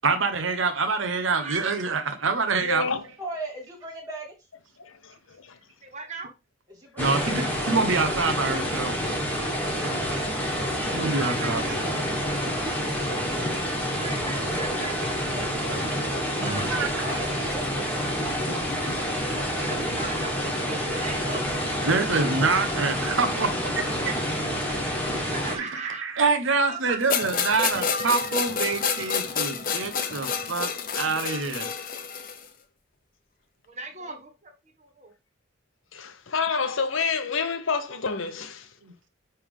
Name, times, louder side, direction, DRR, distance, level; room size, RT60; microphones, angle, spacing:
voice 1, 0.0-2.9 7.0-9.0 9.9-10.0 10.9-11.8 16.4-16.9 21.9-23.5 24.1-24.2 25.5-31.7 38.8-38.9, right 4 dB, 70° right, 0.9 m, -26 dB
voice 2, 1.3-1.6 5.8-6.3 7.1-7.4 10.7-11.7 13.8-15.8 16.3-17.2 19.5-22.5 25.2-26.0 26.6-28.1 33.7-34.5 34.8-35.1, right 3 dB, 35° right, 1.4 m, -39 dB
voice 3, 2.6-3.1 4.8-5.6 35.9-38.7, left 5 dB, 75° left, 0.8 m, -29 dB
voice 4, 3.2-4.3 6.7-7.3 14.2-14.3 16.3-18.6, right 2 dB, 20° right, 2.6 m, -38 dB
sound 1, 7.0-25.5, equal, 10° left, 1.5 m, -28 dB
sound 2, 27.1-32.5, left 6 dB, 45° left, 0.8 m, -28 dB
9.8 x 3.5 x 3.5 m
head